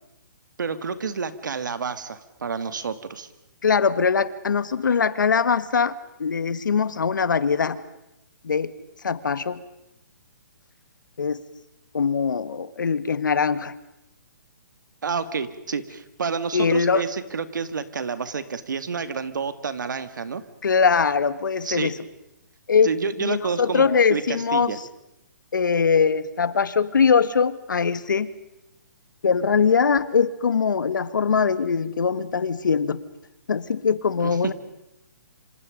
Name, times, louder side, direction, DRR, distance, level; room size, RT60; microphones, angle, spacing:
voice 1, 0.6-3.3 15.0-20.4 21.6-21.9 22.8-23.8 24.1-24.8 34.2-34.5, right 5 dB, 75° right, 11 dB, 2.2 m, -29 dB
voice 2, 3.6-7.8 8.4-8.7 9.0-9.6 11.2-11.4 11.9-13.8 16.5-17.0 20.6-22.0 22.7-22.9 23.2-24.8 25.5-28.3 29.2-33.0 33.5-34.5, left 6 dB, 80° left, 15 dB, 1.5 m, -22 dB
27.0 x 27.0 x 5.2 m, 0.89 s
hypercardioid pair, 150°, 10 cm